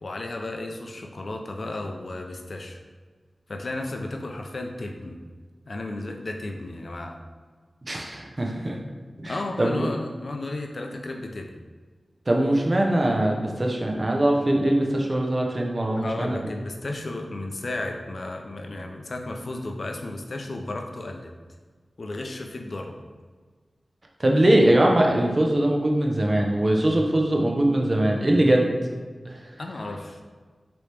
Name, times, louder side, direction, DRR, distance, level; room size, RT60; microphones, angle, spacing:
voice 1, 0.0-2.8 3.5-5.2 5.7-7.2 9.3-11.5 15.9-21.3 22.0-22.9 29.6-30.2, left 2 dB, 65° left, 3 dB, 0.5 m, -33 dB
voice 2, 7.9-8.8 9.2-9.8 12.3-16.4 24.2-28.7 29.2-29.4, right 1 dB, 45° right, 1 dB, 0.7 m, -22 dB
4.8 x 3.0 x 3.3 m, 1.5 s
cardioid pair, 45°, 0 cm